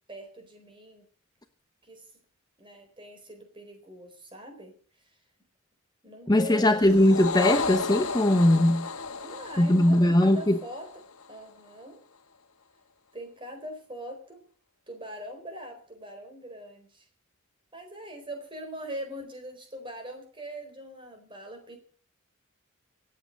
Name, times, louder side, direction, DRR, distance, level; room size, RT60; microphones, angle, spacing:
voice 1, 0.1-1.0 1.8-2.1 2.6-4.7 5.0-5.1 6.0-6.9 9.2-10.9 11.3-12.0 13.1-14.4 14.9-17.0 17.7-21.8, equal, 25° right, 4.2 m, -42 dB
voice 2, 6.3-8.9 9.6-10.6, left 1 dB, 20° left, 0.8 m, -20 dB
sound 1, 6.8-11.4, left 4 dB, 80° left, 1.4 m, -34 dB
25.0 x 8.4 x 5.3 m
head